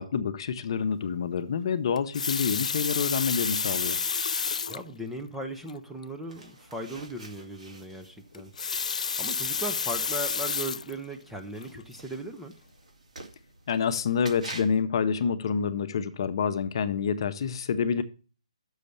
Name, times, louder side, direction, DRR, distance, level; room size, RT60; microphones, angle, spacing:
voice 1, 0.0-4.0 13.7-18.0, left 6 dB, 40° left, 0.7 m, -27 dB
Water tap faucet, 2.0-4.9 5.7-5.8 6.0-6.1 8.3-10.9 11.6-11.8, left 5 dB, 75° left, 0.4 m, -30 dB
voice 2, 4.7-8.5 9.2-12.5, right 1 dB, 5° right, 0.5 m, -37 dB
sound 1, 6.3-14.8, right 2 dB, 85° right, 2.8 m, -48 dB
6.7 x 6.4 x 6.7 m
hypercardioid pair, 165°, 4 cm